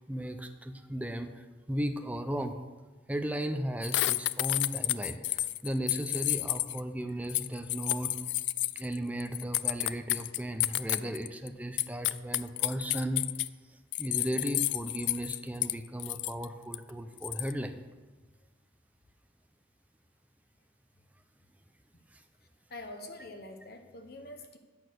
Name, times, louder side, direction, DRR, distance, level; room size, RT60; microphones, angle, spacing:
voice 1, 0.1-2.5 3.1-8.1 8.7-13.2 14.0-17.8 22.1-22.2, right 1 dB, 10° right, 6 dB, 0.6 m, -36 dB
sound 1, 3.8-6.8 7.3-11.5 11.8-13.5 13.9-15.7 16.0-16.5 16.7-16.8 17.2-17.5, left 17 dB, 75° left, 0.3 m, -31 dB
voice 2, 22.7-24.6, left 2 dB, 55° left, 5 dB, 1.1 m, -45 dB
8.8 x 6.3 x 6.4 m, 1.2 s
head